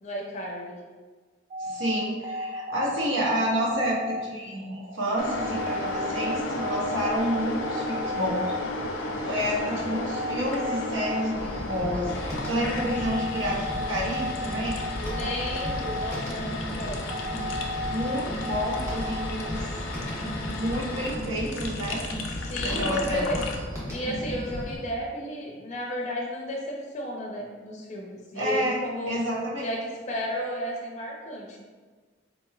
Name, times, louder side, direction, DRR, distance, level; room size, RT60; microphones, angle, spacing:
voice 1, 0.0-0.8 9.3-9.9 13.0-13.2 15.0-17.0 22.4-23.4 23.9-29.2 29.6-31.6, equal, 35° left, -2 dB, 0.6 m, -33 dB
sound 1, 1.5-19.5, equal, 40° right, 0.4 m, -35 dB
voice 2, 1.6-8.4 9.2-14.8 17.8-19.7 20.5-22.0 22.6-23.2 28.3-28.8 29.1-29.7, equal, 70° right, -4 dB, 0.9 m, -29 dB
sound 2, 5.2-23.6, left 2 dB, 85° left, 0.5 m, -34 dB
sound 3, 11.4-24.8, equal, 15° right, 1.0 m, -35 dB
4.2 x 3.0 x 2.3 m, 1.4 s
head